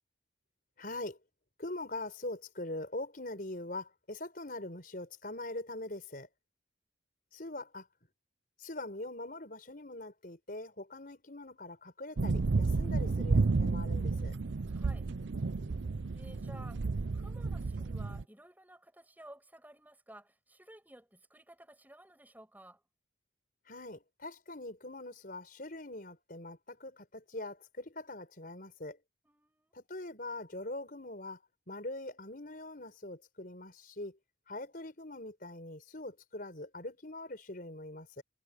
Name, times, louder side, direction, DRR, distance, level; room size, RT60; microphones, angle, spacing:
voice 1, 0.8-1.2 1.6-6.3 7.3-7.9 8.6-14.3 23.7-29.0 29.7-31.4 31.7-34.2 34.5-38.2, left 2 dB, 50° left, 5.4 m, -43 dB
sound 1, 12.2-18.2, right 3 dB, 85° right, 0.6 m, -31 dB
voice 2, 14.7-15.1 16.1-16.9 17.1-22.8 29.2-29.7, right 1 dB, 10° right, 6.5 m, -55 dB
head